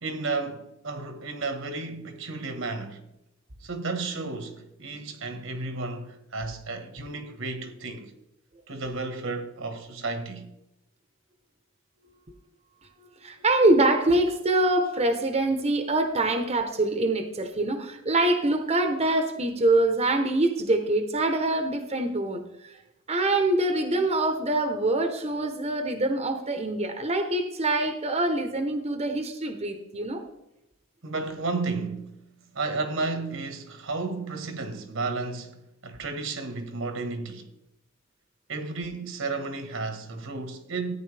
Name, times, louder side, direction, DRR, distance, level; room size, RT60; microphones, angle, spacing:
voice 1, 0.0-3.1 3.6-8.1 8.7-10.5 31.0-32.2 32.5-37.5 38.5-41.0, right 3 dB, 70° right, 1.4 m, -33 dB
voice 2, 13.2-22.8 23.1-30.2, right 2 dB, 30° right, 0.9 m, -24 dB
14.0 x 9.4 x 3.4 m
head